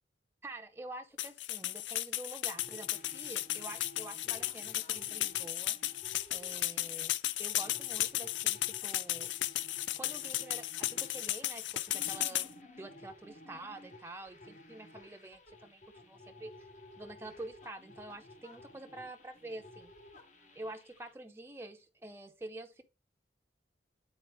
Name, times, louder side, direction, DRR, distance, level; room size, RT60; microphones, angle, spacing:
voice 1, 0.4-5.8 6.3-7.1 7.4-9.3 10.0-12.5 12.8-16.5 17.0-19.9 20.6-22.8, right 2 dB, 15° right, 0.5 m, -47 dB
sound 1, 1.2-12.5, left 15 dB, 80° left, 0.3 m, -35 dB
sound 2, 2.5-21.1, left 1 dB, 40° left, 1.0 m, -55 dB
9.3 x 4.2 x 3.0 m
head